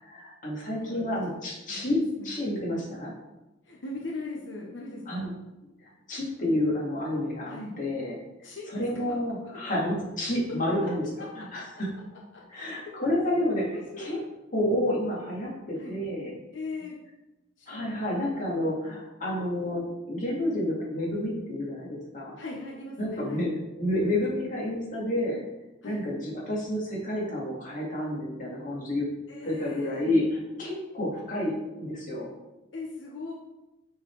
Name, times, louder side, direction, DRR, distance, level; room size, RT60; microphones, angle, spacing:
voice 1, 0.0-3.1 5.1-5.3 6.1-11.0 11.3-11.9 12.5-14.2 14.5-16.3 17.7-22.3 23.0-23.5 23.8-25.4 25.8-29.1 29.4-30.2 30.6-32.3, left 1 dB, 45° left, -4 dB, 2.0 m, -30 dB
voice 2, 1.7-2.3 3.6-5.3 7.5-7.7 8.4-8.8 9.5-9.6 11.2-11.3 12.5-12.7 13.0-13.1 13.6-14.3 15.8-16.0 16.5-17.0 17.6-18.3 22.4-23.4 25.8-26.0 29.3-30.1 32.7-33.3, left 2 dB, 85° left, -2 dB, 1.0 m, -40 dB
6.3 x 4.1 x 4.6 m, 1.0 s
head